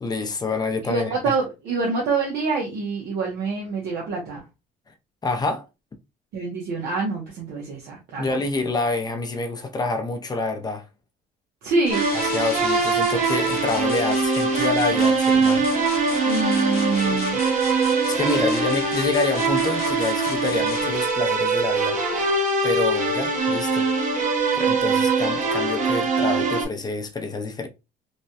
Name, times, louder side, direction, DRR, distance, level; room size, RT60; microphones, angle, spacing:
voice 1, 0.0-1.3 5.2-5.7 8.2-10.8 12.1-15.7 18.2-22.0 22.6-23.9 24.5-27.7, left 3 dB, 25° left, 0.5 m, -27 dB
voice 2, 0.9-4.4 6.3-8.2 11.6-12.0 16.2-17.4 18.2-18.7, right 3 dB, 75° right, 0.8 m, -26 dB
sound 1, 11.9-21.1, left 7 dB, 65° left, 0.7 m, -36 dB
sound 2, 11.9-26.6, right 3 dB, 45° right, 0.9 m, -22 dB
3.2 x 2.2 x 2.6 m
cardioid pair, 110°, 17 cm